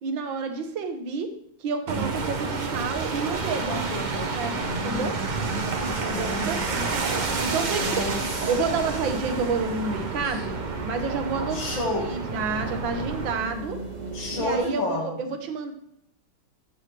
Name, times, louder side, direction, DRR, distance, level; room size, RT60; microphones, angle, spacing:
voice 1, 0.0-1.3 1.6-3.8 4.3-4.6 4.8-5.2 6.0-6.9 7.4-8.1 8.5-10.6 10.8-11.8 12.1-13.8 14.3-15.7, right 4 dB, 80° right, 6 dB, 1.8 m, -29 dB
sound 1, 1.9-13.3, right 4 dB, 65° right, 0.4 m, -30 dB
voice 2, 3.6-6.7 7.7-8.2 8.5-8.6 10.3-10.4 11.5-12.1 14.1-15.2, left 2 dB, 80° left, -1 dB, 2.6 m, -32 dB
sound 2, 5.3-14.6, right 3 dB, 30° right, 1.0 m, -37 dB
13.0 x 6.7 x 3.3 m, 0.72 s
omnidirectional pair, 2.1 m